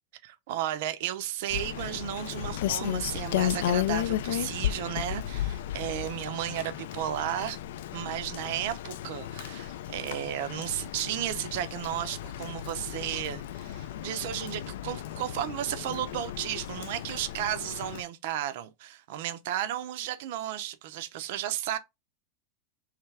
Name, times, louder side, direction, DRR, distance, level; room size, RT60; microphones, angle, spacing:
voice 1, 0.2-7.6 7.9-21.8, right 12 dB, 60° right, 0.5 m, -34 dB
Rain, 1.5-18.0, left 12 dB, 75° left, 0.4 m, -34 dB
3.3 x 3.2 x 4.7 m
supercardioid pair, 165°, 0 cm